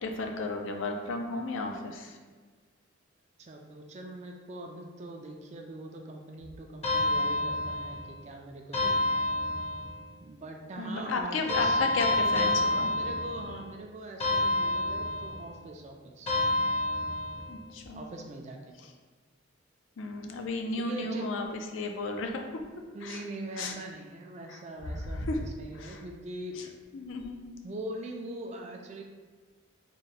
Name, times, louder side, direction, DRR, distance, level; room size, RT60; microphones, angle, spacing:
voice 1, 0.0-2.2 8.8-8.9 10.8-12.9 17.5-18.0 20.0-21.4 21.7-22.5 23.0-23.2 23.6-23.8 24.5-24.6 24.8-25.4 25.7-26.0 26.6-26.7 26.9-27.5, left 3 dB, 80° left, 3 dB, 0.5 m, -33 dB
voice 2, 3.4-9.2 10.2-11.8 12.2-16.3 17.9-18.7 20.8-21.3 22.9-26.7 27.6-29.0, right 1 dB, 35° right, 2 dB, 0.3 m, -42 dB
sound 1, 6.8-8.1 8.7-10.0 11.5-13.7 14.2-15.5 16.3-17.6, left 2 dB, 30° left, 0.6 m, -28 dB
3.7 x 2.1 x 4.0 m, 1.5 s
head